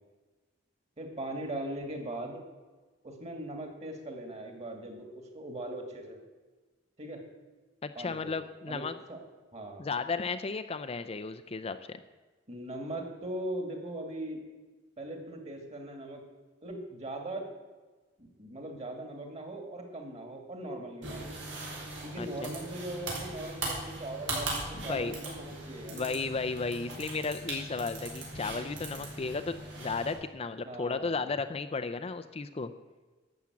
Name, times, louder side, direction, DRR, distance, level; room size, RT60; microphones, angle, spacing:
voice 1, 1.0-2.4 3.0-6.2 7.0-7.2 7.9-8.3 8.7-8.8 9.1-9.2 9.5-9.9 12.5-14.4 15.0-16.2 16.6-17.4 18.2-21.3 22.0-26.1 30.6-31.3, right 1 dB, 35° right, 4 dB, 2.5 m, -40 dB
voice 2, 7.8-8.9 9.8-12.0 22.2-22.5 24.8-25.1 25.9-32.7, left 4 dB, 35° left, 9 dB, 0.5 m, -34 dB
sound 1, 21.0-30.1, right 2 dB, 85° right, 4.3 m, -39 dB
12.0 x 7.2 x 8.6 m, 1.3 s
head